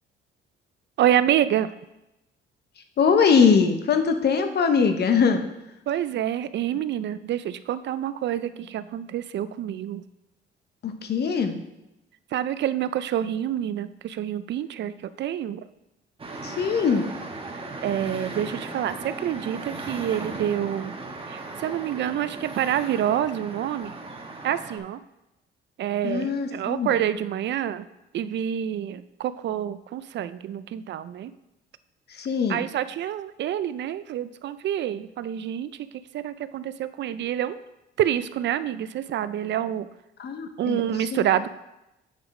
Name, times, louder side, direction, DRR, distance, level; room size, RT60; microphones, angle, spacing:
voice 1, 1.0-1.7 5.9-10.0 12.3-14.9 15.2-15.7 17.8-21.0 21.3-23.9 24.4-25.0 25.8-27.9 28.1-31.3 32.5-35.9 36.1-37.6 38.0-39.9 40.6-41.5, right 10 dB, 65° right, 14 dB, 0.4 m, -27 dB
voice 2, 3.0-5.4 10.8-11.6 16.4-17.1 26.0-26.9 32.2-32.6 40.2-40.8 41.1-41.2, left 6 dB, 55° left, 7 dB, 1.0 m, -22 dB
sound 1, 16.2-24.8, right 3 dB, 30° right, 1.2 m, -37 dB
8.2 x 5.0 x 4.8 m, 0.92 s
cardioid pair, 90°, 20 cm